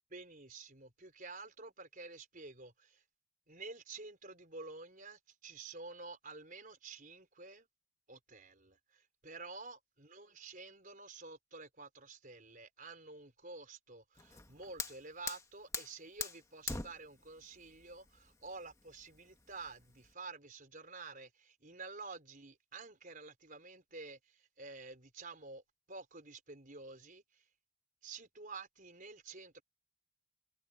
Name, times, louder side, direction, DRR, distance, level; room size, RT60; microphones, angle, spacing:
voice 1, 0.1-3.0 3.5-7.7 8.1-25.6 25.9-27.4 28.0-29.6, right 3 dB, 40° right, 4.9 m, -50 dB
Fire, 14.2-20.1, left 4 dB, 15° left, 1.6 m, -44 dB
head